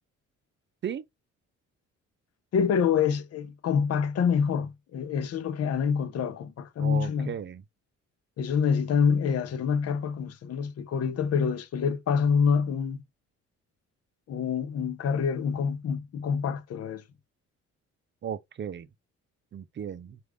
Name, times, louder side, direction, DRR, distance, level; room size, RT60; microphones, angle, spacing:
voice 1, 2.5-7.3 8.4-13.0 14.3-17.0, left 6 dB, 55° left, 0.7 m, -26 dB
voice 2, 6.8-7.6 18.2-18.9 19.5-20.2, right 8 dB, 40° right, 0.5 m, -35 dB
4.6 x 2.5 x 3.5 m
cardioid pair, 90°, 30 cm